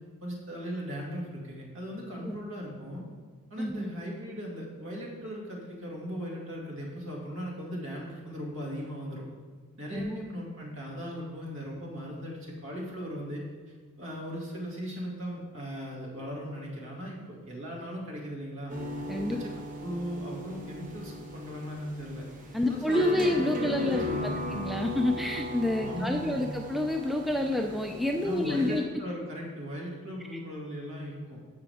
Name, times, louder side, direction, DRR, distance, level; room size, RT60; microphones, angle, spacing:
voice 1, 0.2-3.0 3.5-9.2 9.8-13.4 14.0-18.7 19.3-19.5 19.8-22.2 22.6-24.6 25.8-26.6 28.2-31.4, equal, 60° right, -3 dB, 2.3 m, -38 dB
voice 2, 3.6-3.9 9.9-10.2 19.1-19.4 22.5-28.8, left 1 dB, ahead, 3 dB, 0.4 m, -28 dB
sound 1, 18.7-28.8, left 1 dB, 35° right, 1.2 m, -38 dB
14.5 x 6.1 x 3.5 m, 1.5 s
head